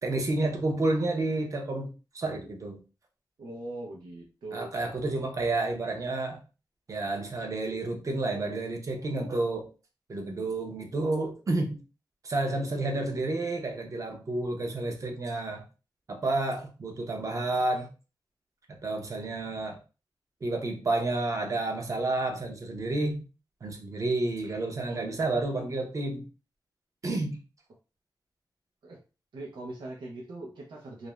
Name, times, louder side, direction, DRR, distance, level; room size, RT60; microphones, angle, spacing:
voice 1, 0.0-2.8 4.5-6.4 6.9-9.7 10.1-11.8 12.2-15.6 16.1-17.9 18.7-19.8 20.4-23.2 23.6-26.3 27.0-27.4, right 2 dB, 45° right, 3 dB, 0.6 m, -30 dB
voice 2, 3.4-4.7 28.8-29.0 29.3-31.1, right 2 dB, 90° right, -2 dB, 0.6 m, -41 dB
2.4 x 2.0 x 3.0 m, 0.33 s
wide cardioid pair, 150°, 8 cm